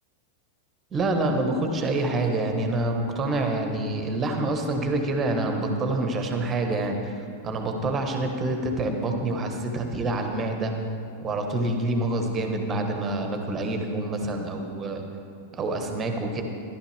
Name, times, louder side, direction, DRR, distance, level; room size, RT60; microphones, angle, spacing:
voice 1, 0.9-7.2 7.4-10.7 11.2-15.0 15.6-16.4, right 2 dB, 25° right, 4 dB, 1.4 m, -27 dB
14.5 x 11.5 x 3.5 m, 2.8 s
figure-of-eight pair, 90°, 0 cm